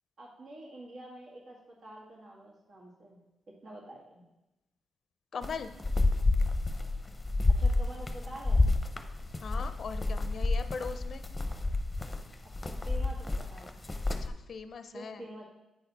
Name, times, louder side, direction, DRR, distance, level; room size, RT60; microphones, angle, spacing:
voice 1, 0.2-3.2 3.6-4.2 7.6-8.7 12.6-13.8 14.9-15.4, right 1 dB, 65° right, -3 dB, 2.0 m, -47 dB
voice 2, 5.3-5.7 9.4-11.2 14.2-15.2, left 5 dB, 60° left, 10 dB, 0.5 m, -40 dB
sound 1, 5.4-14.3, left 2 dB, 20° left, 0.7 m, -29 dB
9.3 x 4.2 x 4.2 m, 0.98 s
supercardioid pair, 60°, 0 cm